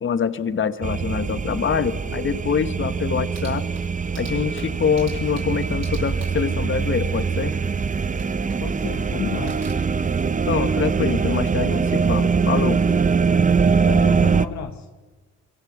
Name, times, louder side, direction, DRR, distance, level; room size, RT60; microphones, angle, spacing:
voice 1, 0.0-3.6 4.2-7.5 10.5-12.8, left 6 dB, 40° left, 12 dB, 1.3 m, -25 dB
sound 1, 0.8-14.5, right 5 dB, 25° right, 0.9 m, -22 dB
sound 2, 3.2-7.7 8.2-8.9 9.3-9.7, right 6 dB, 60° right, 6.5 m, -46 dB
voice 2, 8.6-9.6 13.8-14.9, left 9 dB, 65° left, 7 dB, 1.3 m, -32 dB
27.0 x 24.0 x 7.4 m, 1.3 s
cardioid pair, 90°, 30 cm